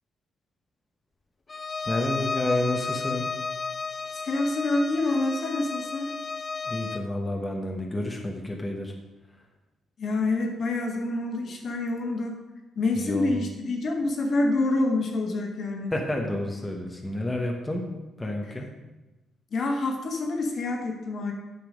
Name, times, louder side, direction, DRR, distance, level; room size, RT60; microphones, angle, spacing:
Bowed string instrument, 1.5-7.1, left 4 dB, 30° left, 0.4 m, -33 dB
voice 1, 1.8-3.3 6.6-8.9 13.0-13.3 15.9-17.9 18.2-18.7, left 1 dB, 10° left, 1 dB, 1.2 m, -30 dB
voice 2, 4.1-6.1 10.0-12.4 12.7-15.9 19.5-21.3, left 2 dB, 55° left, 2 dB, 1.6 m, -27 dB
8.9 x 6.0 x 5.2 m, 1.1 s
cardioid pair, 110°, 0 cm